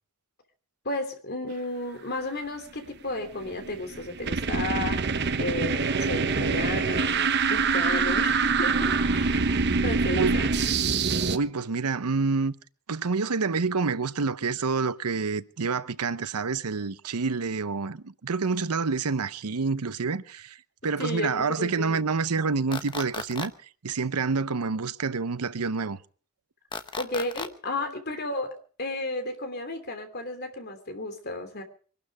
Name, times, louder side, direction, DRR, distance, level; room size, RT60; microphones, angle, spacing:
voice 1, 0.8-5.0 5.4-9.4 9.8-10.5 21.0-22.0 27.0-28.5 28.8-31.6, left 2 dB, 45° left, 3.0 m, -33 dB
sound 1, 3.3-11.4, right 4 dB, 50° right, 0.9 m, -25 dB
voice 2, 11.3-12.5 12.9-20.6 20.8-23.5 23.8-26.0, right 4 dB, 90° right, 0.8 m, -28 dB
sound 2, 22.7-23.5 26.7-27.5, left 4 dB, 20° left, 0.9 m, -34 dB
24.0 x 12.0 x 4.8 m
head